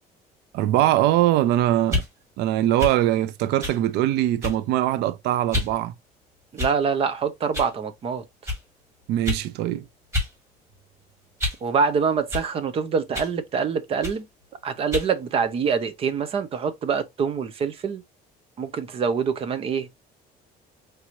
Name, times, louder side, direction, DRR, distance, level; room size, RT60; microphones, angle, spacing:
voice 1, 0.5-2.0 2.4-5.9 9.1-9.8, right 13 dB, 90° right, 0.5 m, -22 dB
sound 1, 1.8-2.1 2.8-3.0 3.6-3.8 4.4-4.7 5.5-5.7 6.6-6.9 7.5-7.7 8.4-8.6 9.2-9.5 10.1-10.3 10.7-11.7 12.3-12.5 13.1-13.4 14.0-14.2 14.9-15.1, left 2 dB, 15° right, 1.9 m, -29 dB
voice 2, 6.5-8.2 11.6-14.2 14.6-18.0 18.6-19.9, right 6 dB, 35° right, 0.7 m, -25 dB
4.7 x 3.0 x 2.6 m
cardioid pair, 165°, 17 cm